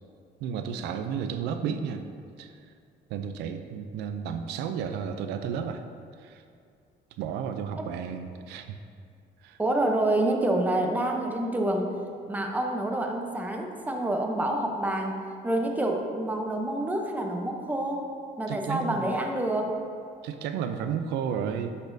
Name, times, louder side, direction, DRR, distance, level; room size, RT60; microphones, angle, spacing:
voice 1, 0.4-2.0 2.4-2.5 3.1-5.8 6.2-6.4 7.2-8.8 9.4-9.6 18.5-19.1 20.2-21.7, right 7 dB, 85° right, 7 dB, 0.4 m, -32 dB
voice 2, 9.6-11.9 12.3-18.1 18.4-19.7, right 1 dB, 10° right, 2 dB, 0.7 m, -27 dB
10.5 x 4.2 x 2.6 m, 2.4 s
cardioid pair, 110°, 17 cm